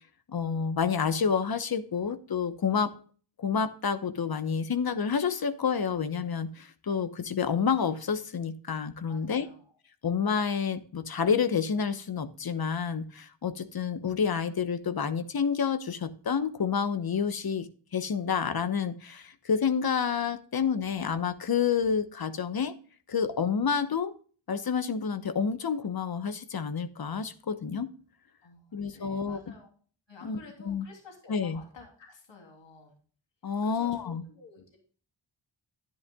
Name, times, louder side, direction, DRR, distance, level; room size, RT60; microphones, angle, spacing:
voice 1, 0.3-2.9 3.4-9.5 10.0-17.7 17.9-22.7 23.1-24.1 24.5-27.9 28.7-29.4 30.2-30.4 30.6-30.8 31.3-31.6 33.4-34.2, left 6 dB, 50° left, 12 dB, 1.0 m, -29 dB
voice 2, 9.1-9.8 28.4-29.7 30.1-32.9 33.6-34.8, left 4 dB, 70° left, 1 dB, 3.3 m, -51 dB
10.5 x 10.5 x 2.3 m, 0.41 s
cardioid pair, 70°, 46 cm